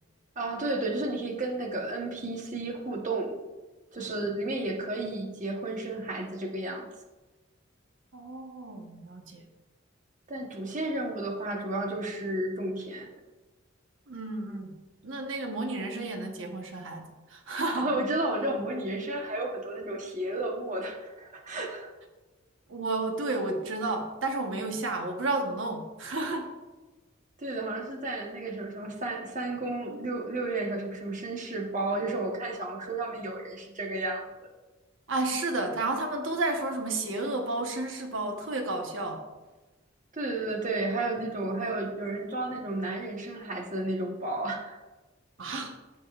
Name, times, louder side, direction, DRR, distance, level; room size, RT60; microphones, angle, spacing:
voice 1, 0.4-3.4 3.9-6.9 10.3-13.1 17.8-21.9 27.4-34.5 40.1-44.8, right 2 dB, 40° right, 1 dB, 1.1 m, -32 dB
voice 2, 8.1-9.4 14.1-14.8 15.0-17.9 22.7-26.6 35.1-39.2 45.4-45.8, right 2 dB, 80° right, 3 dB, 1.1 m, -32 dB
16.0 x 5.3 x 2.4 m, 1.2 s
head